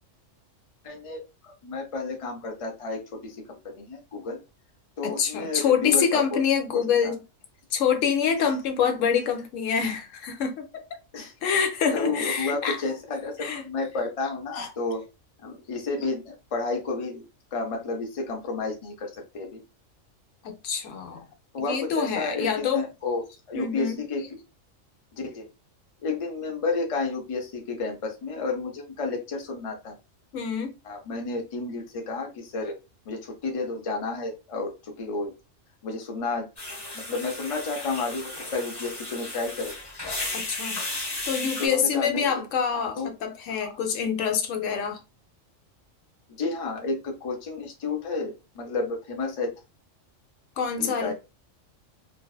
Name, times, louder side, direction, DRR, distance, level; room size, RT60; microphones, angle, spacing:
voice 1, 0.8-4.4 5.0-6.4 6.7-7.1 11.1-11.3 11.9-15.0 15.4-19.6 21.5-24.4 25.2-25.5 26.0-29.9 30.8-32.7 33.1-35.3 35.8-36.5 36.9-39.7 41.6-42.4 42.7-43.1 43.6-43.7 46.4-49.5 50.8-51.1, left 3 dB, 45° left, 0.4 m, -31 dB
voice 2, 5.0-7.2 7.7-10.8 11.4-12.9 13.4-13.6 14.5-14.7 20.4-21.2 21.7-22.8 23.5-24.0 30.3-30.7 40.3-40.8 41.3-45.0 50.6-51.1, left 7 dB, 75° left, 0.9 m, -26 dB
sound 1, 36.6-41.7, left 2 dB, 20° left, 0.8 m, -34 dB
2.5 x 2.3 x 2.3 m
omnidirectional pair, 1.3 m